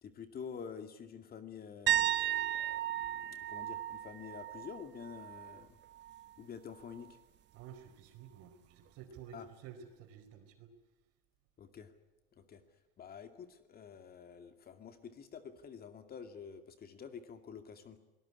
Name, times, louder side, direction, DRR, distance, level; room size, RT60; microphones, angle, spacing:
voice 1, 0.0-5.8 6.4-7.2 9.3-9.5 11.6-11.9 12.3-18.0, left 7 dB, 30° left, 8 dB, 2.4 m, -49 dB
sound 1, 1.9-5.6 5.9-6.3 9.2-9.3, right 12 dB, 40° right, 0.8 m, -35 dB
voice 2, 7.5-10.7, right 7 dB, 55° right, 8 dB, 4.7 m, -52 dB
25.0 x 19.0 x 9.9 m, 1.0 s
supercardioid pair, 105°, 29 cm